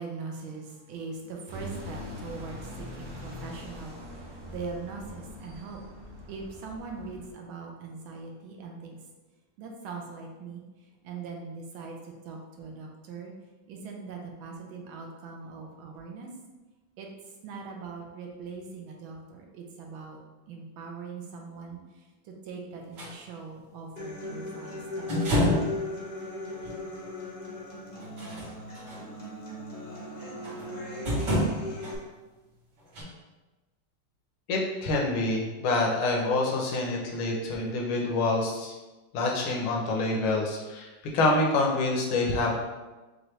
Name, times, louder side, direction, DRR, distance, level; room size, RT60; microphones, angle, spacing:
voice 1, 0.0-5.8 6.3-9.0 9.6-13.3 13.7-16.3 17.0-20.2 20.5-25.1, right 4 dB, 75° right, 0 dB, 1.5 m, -41 dB
sound 1, 1.5-7.3, left 1 dB, 30° right, 0.4 m, -42 dB
sound 2, 23.0-23.1 25.1-25.8 26.6-26.7 28.0-29.0 30.4-30.7 31.1-31.9 32.9-33.0, equal, 60° right, 2.2 m, -27 dB
Human voice / Acoustic guitar, 24.0-31.9, left 1 dB, 45° left, 0.6 m, -38 dB
voice 2, 34.5-38.7 39.1-40.9 41.1-42.6, left 2 dB, 85° left, -1 dB, 1.7 m, -26 dB
6.2 x 2.6 x 3.1 m, 1.2 s
omnidirectional pair, 2.3 m